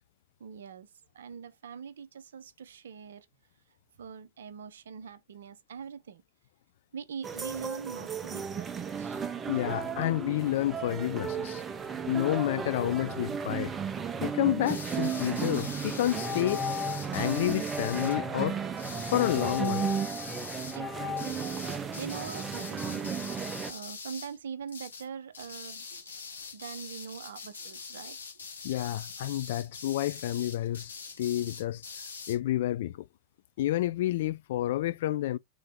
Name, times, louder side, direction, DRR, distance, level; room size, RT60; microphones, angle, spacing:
voice 1, 0.4-0.9 1.1-3.3 4.0-6.2 6.9-9.3 20.5-21.5 22.0-26.0 26.5-28.2 31.2-31.3, right 6 dB, 65° right, 0.5 m, -43 dB
sound 1, 7.2-23.7, right 6 dB, 20° right, 0.6 m, -34 dB
voice 2, 9.5-11.6 12.1-13.7 14.2-16.6 17.1-18.6 19.1-19.9 28.6-31.8 32.3-33.1 33.6-35.4, left 14 dB, 55° left, 0.3 m, -29 dB
sound 2, 14.6-18.2 18.8-20.8 21.2-24.4 24.7-25.1 25.3-32.4, left 5 dB, 70° left, 1.1 m, -43 dB
sound 3, 15.2-15.5 16.1-17.1 17.7-18.5 19.1-20.3 20.7-21.3, left 8 dB, 25° left, 1.0 m, -37 dB
3.8 x 2.8 x 3.5 m
figure-of-eight pair, 90°, 0 cm